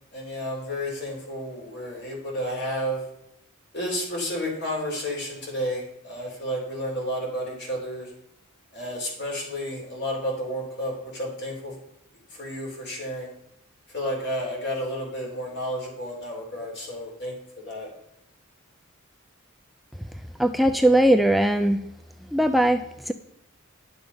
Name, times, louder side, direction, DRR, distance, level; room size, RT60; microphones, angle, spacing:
voice 1, 0.1-3.0 3.7-8.1 8.7-11.8 12.3-13.3 13.9-17.9, equal, 55° left, -1 dB, 4.0 m, -31 dB
voice 2, 20.4-21.8 22.3-23.1, right 1 dB, ahead, 6 dB, 0.4 m, -20 dB
11.0 x 7.0 x 5.6 m, 0.77 s
head